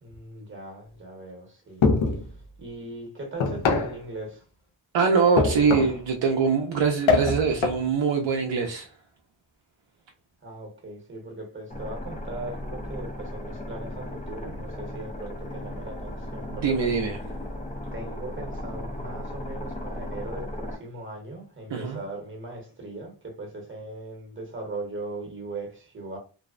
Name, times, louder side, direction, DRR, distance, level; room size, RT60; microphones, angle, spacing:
voice 1, 0.0-1.8 2.6-4.4 10.4-16.9 17.9-26.2, right 2 dB, 25° right, 0.9 m, -39 dB
sound 1, 1.8-2.3 3.4-4.0 5.4-6.0 7.1-7.8, left 4 dB, 85° left, 0.6 m, -23 dB
voice 2, 4.9-8.9 16.6-17.2 21.7-22.0, right 5 dB, 80° right, 0.5 m, -23 dB
sound 2, 11.7-20.8, left 1 dB, 20° left, 0.4 m, -36 dB
2.6 x 2.0 x 2.4 m
wide cardioid pair, 110°, 45 cm